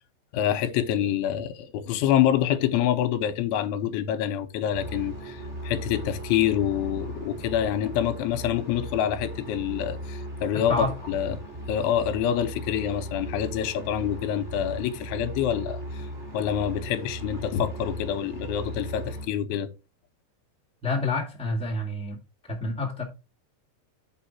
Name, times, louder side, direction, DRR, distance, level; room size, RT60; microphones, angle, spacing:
voice 1, 0.3-11.4 11.7-16.1 16.3-19.7, left 10 dB, 85° left, 3.3 m, -26 dB
sound 1, 4.7-19.3, right 1 dB, 15° right, 1.8 m, -37 dB
voice 2, 10.5-10.9 20.8-22.2 22.5-23.0, left 2 dB, 5° left, 0.4 m, -28 dB
8.2 x 5.6 x 4.3 m
omnidirectional pair, 5.5 m